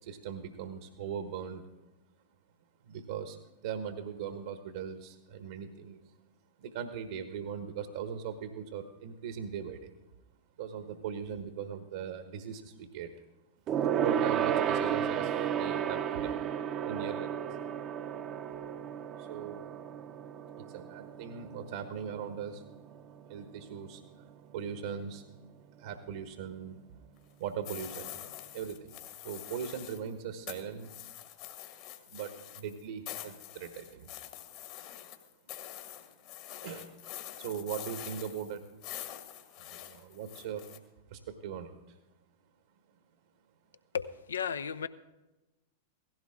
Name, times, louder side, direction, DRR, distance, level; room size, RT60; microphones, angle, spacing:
voice 1, 0.0-1.7 2.8-6.1 6.6-9.9 10.6-13.2 13.9-16.3 16.8-17.5 19.2-19.7 20.6-22.6 23.3-25.2 25.8-26.8 27.4-28.3 28.5-28.9 29.2-30.9 32.1-34.1 36.6-36.9 37.4-38.6 39.6-40.7 41.1-42.0, right 7 dB, 65° right, 9 dB, 1.3 m, -40 dB
Gong, 13.7-23.4 23.7-24.0 24.3-24.4, right 9 dB, 35° right, 0.7 m, -33 dB
sound 1, 27.6-30.1 30.5-40.8, left 12 dB, 50° left, 1.7 m, -45 dB
voice 2, 43.9-44.9, left 7 dB, 75° left, 13 dB, 0.7 m, -34 dB
17.0 x 15.5 x 3.8 m, 1.0 s
figure-of-eight pair, 95°, 0 cm